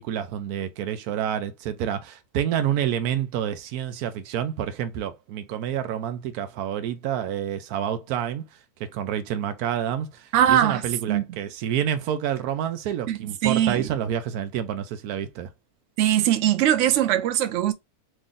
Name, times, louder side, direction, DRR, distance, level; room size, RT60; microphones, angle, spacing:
voice 1, 0.0-8.5 8.8-15.5, right 10 dB, 85° right, 1.1 m, -28 dB
voice 2, 10.3-10.8 11.1-11.2 13.1-13.9 16.0-17.7, right 11 dB, 65° right, 0.8 m, -21 dB
3.1 x 2.6 x 3.7 m
omnidirectional pair, 1.6 m